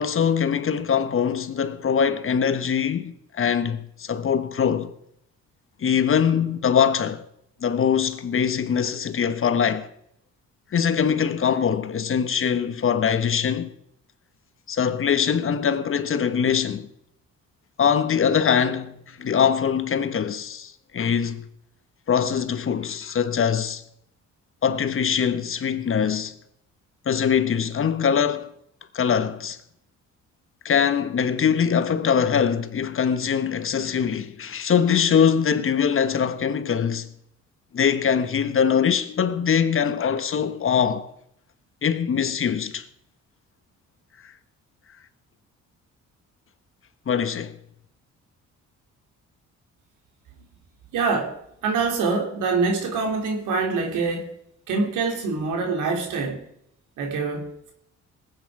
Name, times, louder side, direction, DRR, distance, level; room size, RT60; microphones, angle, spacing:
voice 1, 0.0-4.9 5.8-7.2 7.6-9.9 10.7-13.7 14.7-16.9 17.8-21.5 22.1-23.8 24.6-26.3 27.1-28.5 28.9-29.6 30.6-37.1 37.7-41.1 41.8-42.9 44.2-44.3 47.1-47.6, left 7 dB, 45° left, 1.1 m, -22 dB
voice 2, 50.9-51.4 51.6-54.3 54.7-56.4 57.0-57.7, right 4 dB, 85° right, 3.1 m, -25 dB
19.5 x 8.9 x 4.8 m
cardioid pair, 90°, 30 cm